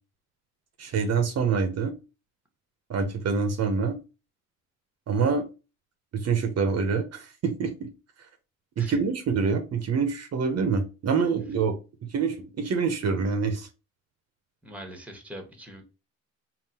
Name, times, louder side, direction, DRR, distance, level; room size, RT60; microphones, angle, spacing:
voice 1, 0.8-1.9 2.9-4.0 5.1-5.5 6.1-7.9 8.8-11.8 12.1-13.7, right 5 dB, 55° right, 0.8 m, -26 dB
voice 2, 14.6-15.8, equal, 5° right, 1.1 m, -42 dB
3.8 x 2.2 x 4.2 m
cardioid pair, 90°, 30 cm